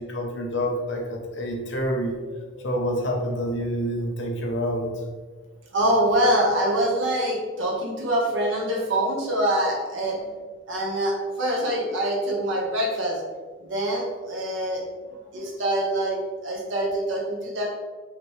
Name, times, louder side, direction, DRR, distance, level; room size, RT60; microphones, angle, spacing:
voice 1, 0.0-2.1 2.6-4.9, equal, 60° left, 1 dB, 0.8 m, -27 dB
voice 2, 5.7-10.3 10.7-13.2 13.6-14.8 15.1-16.2 16.4-17.7, right 1 dB, 70° right, -2 dB, 1.1 m, -25 dB
5.0 x 3.1 x 3.2 m, 1.4 s
head